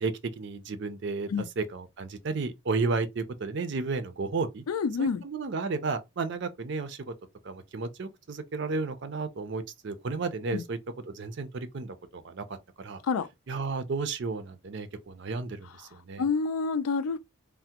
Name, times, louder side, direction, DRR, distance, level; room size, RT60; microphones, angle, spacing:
voice 1, 0.0-1.3 1.6-4.6 5.0-7.1 7.4-10.8 11.0-13.0 13.5-16.2, right 4 dB, 55° right, 0.4 m, -33 dB
voice 2, 4.7-5.2 10.5-10.6 13.0-13.3 16.2-17.2, left 5 dB, 85° left, 0.4 m, -28 dB
3.2 x 2.1 x 2.8 m
head